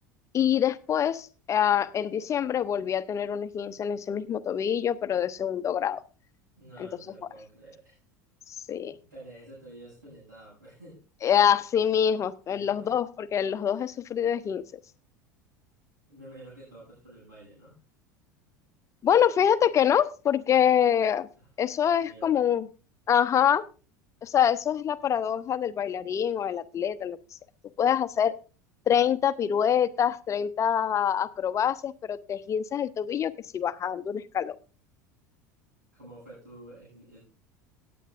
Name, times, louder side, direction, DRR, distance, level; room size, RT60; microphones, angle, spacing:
voice 1, 0.3-6.0 6.8-6.9 8.5-9.0 11.2-14.6 19.0-21.3 21.6-22.7 23.1-23.6 24.2-27.2 27.8-28.3 28.9-34.5, left 9 dB, 35° left, 15 dB, 0.8 m, -25 dB
voice 2, 6.6-8.0 8.8-11.0 12.5-12.9 16.1-17.8 21.4-21.5 21.8-22.4 35.9-37.2, right 1 dB, 85° right, -9 dB, 7.7 m, -49 dB
17.5 x 9.4 x 2.6 m, 0.34 s
figure-of-eight pair, 75°, 9 cm